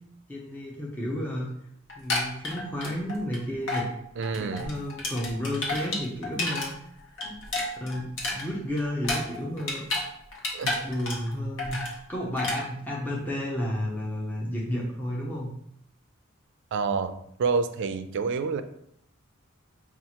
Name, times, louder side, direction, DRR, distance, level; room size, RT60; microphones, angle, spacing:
voice 1, 0.3-1.5 2.0-3.9 4.3-7.3 7.8-9.9 10.6-11.8 12.1-15.5, equal, 10° left, -4 dB, 0.6 m, -32 dB
sound 1, 1.9-3.4 3.7-3.9 4.2-6.7 7.0-10.1 10.3-11.3 11.6-11.9 12.4-12.6, left 2 dB, 65° left, 1.0 m, -31 dB
voice 2, 4.2-4.7 10.5-10.7 16.7-17.1 17.4-18.6, right 5 dB, 60° right, 10 dB, 0.3 m, -27 dB
5.5 x 2.4 x 2.8 m, 0.72 s
head